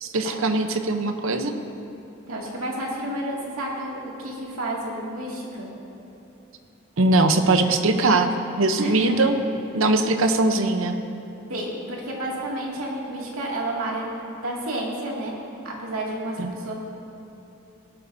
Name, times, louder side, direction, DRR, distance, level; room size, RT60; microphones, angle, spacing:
voice 1, 0.0-1.5 7.0-8.3 8.6-9.4 9.7-10.9 16.4-16.5, right 2 dB, 70° right, 7 dB, 0.8 m, -21 dB
voice 2, 2.3-5.7 8.8-9.2 11.5-14.1 14.4-15.4 15.6-16.7, right 1 dB, 90° right, -3 dB, 2.3 m, -30 dB
17.5 x 12.5 x 2.7 m, 3.0 s
head